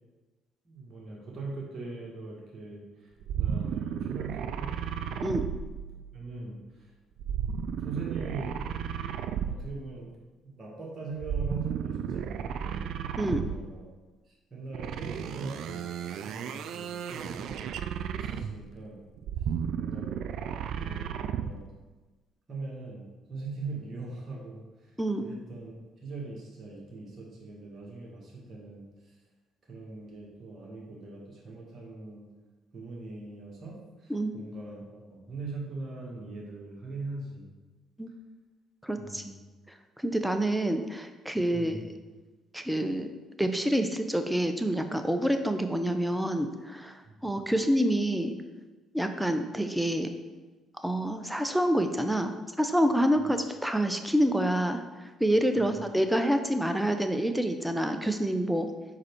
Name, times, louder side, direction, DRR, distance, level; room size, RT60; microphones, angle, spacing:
voice 1, 0.6-3.1 3.4-4.7 6.1-6.9 7.8-8.7 9.5-10.2 10.4-12.9 13.3-13.9 14.3-16.0 16.2-17.5 18.1-19.0 19.7-21.7 22.5-24.9 25.2-25.7 26.0-29.1 29.7-32.2 32.7-37.5 39.0-39.4 41.5-41.9 47.1-47.4 53.2-53.3 55.5-55.9, right 3 dB, 40° right, -4 dB, 1.6 m, -41 dB
sound 1, 3.2-6.3 7.2-9.9 11.2-13.8 14.7-18.7 19.2-21.7, right 8 dB, 65° right, 0.3 m, -34 dB
voice 2, 25.0-25.3 34.1-34.3 38.0-38.1 38.8-39.2 40.0-41.7 42.5-43.1 43.4-48.3 48.9-50.1 50.8-54.8 55.2-58.7, equal, 5° right, 7 dB, 0.7 m, -27 dB
4.9 x 4.7 x 4.5 m, 1.2 s
hypercardioid pair, 55°, 0 cm